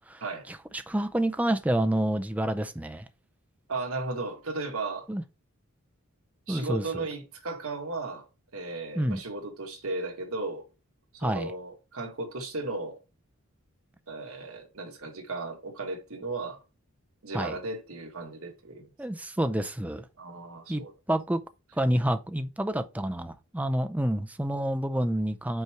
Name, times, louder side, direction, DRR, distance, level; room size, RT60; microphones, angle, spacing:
voice 1, 0.5-3.0 5.1-5.2 6.5-7.0 8.9-9.2 11.2-11.5 17.3-17.6 19.0-20.1 20.7-21.4 21.7-25.6, right 1 dB, 5° right, 0.4 m, -28 dB
voice 2, 3.7-5.1 6.5-8.3 8.5-10.7 11.1-13.0 14.1-16.6 17.2-18.9 20.2-20.9, right 3 dB, 75° right, 1.6 m, -35 dB
5.5 x 4.5 x 4.7 m
head